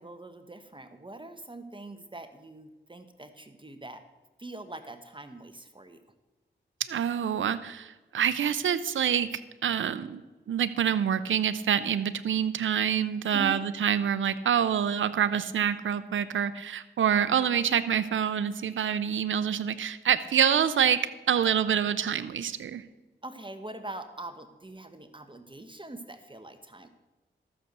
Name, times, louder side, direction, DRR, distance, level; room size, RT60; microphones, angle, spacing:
voice 1, 0.0-4.0 4.4-6.0 13.3-13.6 23.2-26.9, right 2 dB, 25° right, 9 dB, 1.1 m, -43 dB
voice 2, 6.9-10.2 10.5-21.0 21.3-22.8, right 8 dB, 85° right, 13 dB, 0.5 m, -26 dB
13.5 x 6.7 x 6.7 m, 1.1 s
cardioid pair, 50°, 20 cm